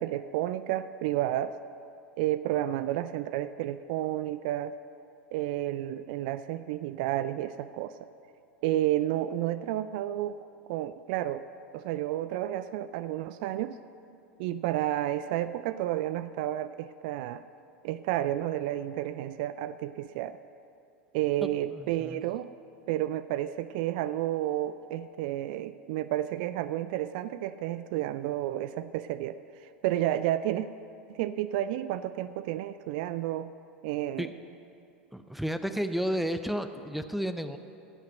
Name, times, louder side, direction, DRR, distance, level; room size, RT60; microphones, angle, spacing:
voice 1, 0.0-1.6 2.2-4.7 5.3-7.9 8.6-10.4 10.7-11.4 11.7-13.8 14.4-17.4 17.8-20.4 21.1-22.5 22.9-30.7 31.1-33.5 33.8-34.3, right 13 dB, 50° right, 14 dB, 0.3 m, -31 dB
voice 2, 21.4-22.2 34.2-34.3 35.1-37.6, equal, ahead, 9 dB, 0.5 m, -32 dB
16.0 x 5.7 x 7.7 m, 2.7 s
figure-of-eight pair, 85°, 6 cm